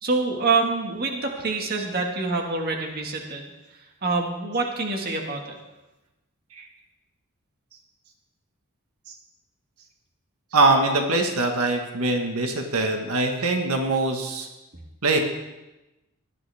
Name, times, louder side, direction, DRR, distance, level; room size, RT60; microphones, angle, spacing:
voice 1, 0.0-5.6, right 3 dB, 45° right, 1 dB, 1.9 m, -26 dB
voice 2, 10.5-14.5 15.0-15.2, right 2 dB, 90° right, 3 dB, 1.6 m, -22 dB
18.0 x 12.5 x 3.5 m, 1.0 s
head